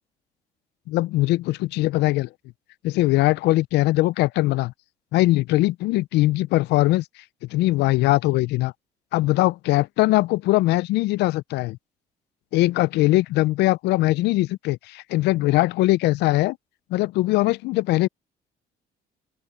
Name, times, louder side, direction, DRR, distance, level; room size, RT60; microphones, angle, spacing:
voice 1, 0.9-2.3 2.8-4.7 5.1-7.0 7.5-8.7 9.1-11.8 12.5-16.6 16.9-18.1, left 18 dB, 75° left, 0.4 m, -21 dB
open air
supercardioid pair, 80°, 17 cm